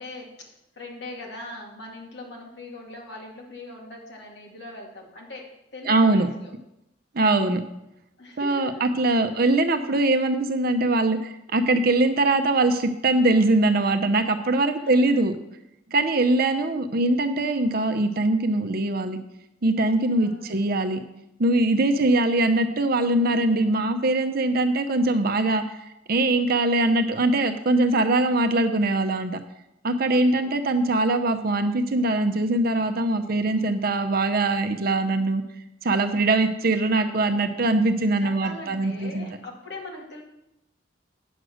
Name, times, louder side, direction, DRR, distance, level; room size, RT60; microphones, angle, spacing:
voice 1, 0.0-6.5 8.2-8.7 9.3-9.5 14.8-15.1 20.2-20.6 30.1-30.6 38.2-40.2, left 2 dB, 65° left, -1 dB, 2.4 m, -41 dB
voice 2, 5.9-6.3 7.1-7.6 8.4-15.3 15.9-19.2 19.6-21.0 21.4-25.6 26.1-29.3 29.8-35.4 35.8-39.3, right 2 dB, 55° right, 7 dB, 0.7 m, -22 dB
8.9 x 6.4 x 6.3 m, 0.86 s
head